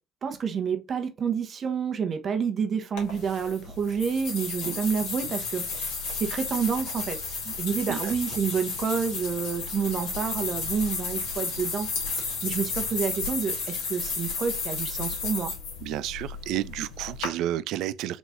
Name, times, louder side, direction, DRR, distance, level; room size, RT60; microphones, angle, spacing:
voice 1, 0.2-5.9 6.2-15.5, right 6 dB, 45° right, 1.0 m, -29 dB
sound 1, 3.0-17.3, left 4 dB, 70° left, 1.8 m, -33 dB
voice 2, 15.8-18.2, right 13 dB, 65° right, 0.3 m, -31 dB
4.1 x 3.0 x 3.6 m
hypercardioid pair, 60°, 0 cm